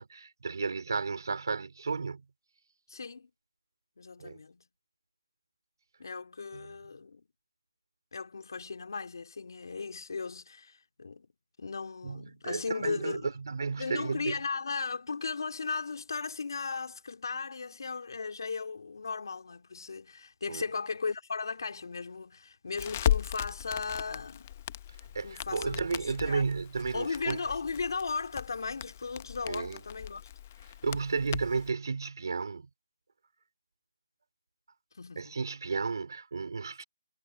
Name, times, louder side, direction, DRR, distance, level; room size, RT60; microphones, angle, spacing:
voice 1, 0.0-2.2 4.2-4.4 6.5-6.7 12.0-14.4 20.5-20.6 25.1-27.4 29.5-29.8 30.8-32.7 35.2-36.8, right 4 dB, 70° right, 4.4 m, -33 dB
voice 2, 2.9-3.3 4.0-4.6 6.0-7.2 8.1-11.3 11.6-13.3 13.7-24.5 25.2-26.4 26.9-30.3 34.9-35.4, left 4 dB, 70° left, 3.1 m, -36 dB
Crackle, 22.8-31.7, left 11 dB, 30° left, 0.9 m, -37 dB
hypercardioid pair, 165°, 2 cm